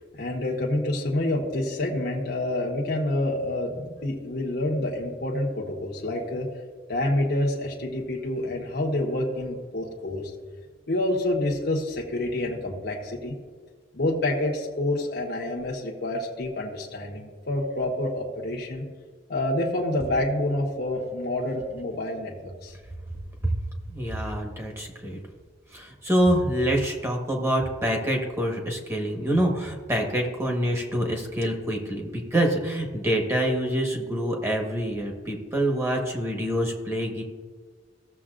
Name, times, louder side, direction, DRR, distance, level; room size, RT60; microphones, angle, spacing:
voice 1, 0.1-6.5 6.9-10.3 10.9-13.3 13.9-18.8 19.3-22.7, left 1 dB, 60° left, -2 dB, 1.1 m, -28 dB
voice 2, 23.9-25.2 25.7-37.2, right 1 dB, 15° right, 1 dB, 1.3 m, -26 dB
15.5 x 7.1 x 2.5 m, 1.5 s
head